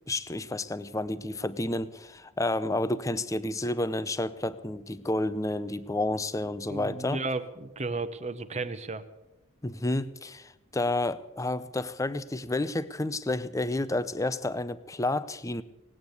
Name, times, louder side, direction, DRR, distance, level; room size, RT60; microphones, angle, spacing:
voice 1, 0.1-7.2 9.6-15.6, left 2 dB, 15° left, 15 dB, 0.6 m, -30 dB
voice 2, 6.7-9.0, right 3 dB, 30° right, 12 dB, 0.9 m, -33 dB
19.0 x 8.8 x 8.0 m, 1.0 s
head